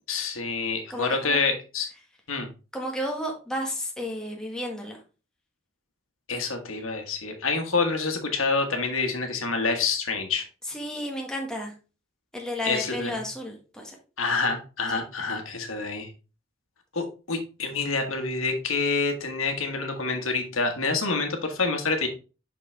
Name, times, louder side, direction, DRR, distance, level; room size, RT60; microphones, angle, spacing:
voice 1, 0.1-1.9 2.3-2.5 6.3-10.4 12.6-13.3 14.2-16.1 16.9-22.1, left 4 dB, 85° left, 4 dB, 1.5 m, -27 dB
voice 2, 0.9-1.4 2.7-5.0 10.7-11.7 12.3-13.9, equal, 5° left, 0 dB, 1.5 m, -32 dB
6.1 x 5.9 x 3.3 m, 0.33 s
head